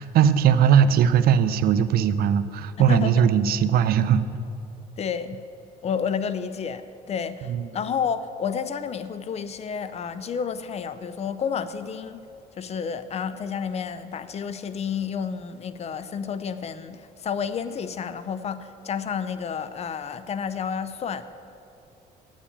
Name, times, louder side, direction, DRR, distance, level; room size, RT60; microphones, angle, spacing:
voice 1, 0.0-4.3 7.5-7.6, right 8 dB, 65° right, 13 dB, 0.6 m, -19 dB
voice 2, 2.8-3.3 5.0-5.4 5.8-12.2 12.6-21.2, left 7 dB, 40° left, 13 dB, 0.6 m, -30 dB
8.4 x 7.3 x 8.7 m, 2.6 s
cardioid pair, 110°, 17 cm